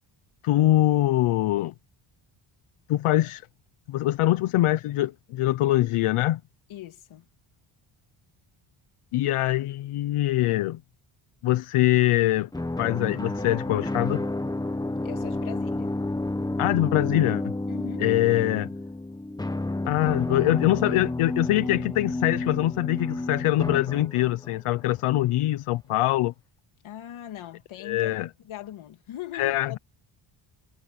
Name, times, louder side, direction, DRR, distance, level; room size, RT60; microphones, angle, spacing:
voice 1, 0.4-1.7 2.9-3.4 3.9-6.4 9.1-10.8 11.4-12.5 12.8-14.2 16.6-17.4 18.0-18.7 19.9-26.3 27.8-28.3 29.3-29.8, left 15 dB, 90° left, 0.9 m, -23 dB
voice 2, 6.7-7.3 15.0-16.0 17.7-18.1 18.5-18.7 26.8-29.8, left 12 dB, 75° left, 2.9 m, -41 dB
sound 1, 12.5-24.6, left 2 dB, 10° left, 1.6 m, -30 dB
cardioid pair, 135°, 49 cm